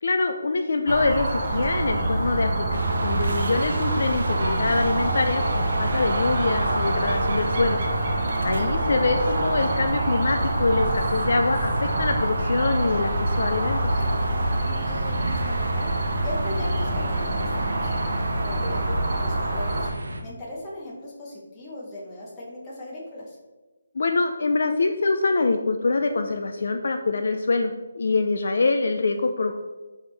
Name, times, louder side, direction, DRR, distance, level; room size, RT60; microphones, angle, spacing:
voice 1, 0.0-7.8 8.4-13.9 23.9-29.5, left 3 dB, 50° left, 5 dB, 0.4 m, -24 dB
sound 1, 0.9-19.9, right 2 dB, 30° right, 0.8 m, -25 dB
sound 2, 2.7-20.2, right 1 dB, 75° right, 0.9 m, -34 dB
voice 2, 8.4-8.8 14.6-15.9 16.2-23.4, left 1 dB, 10° left, -5 dB, 0.9 m, -38 dB
8.9 x 3.6 x 3.3 m, 1.2 s
hypercardioid pair, 180°, 0 cm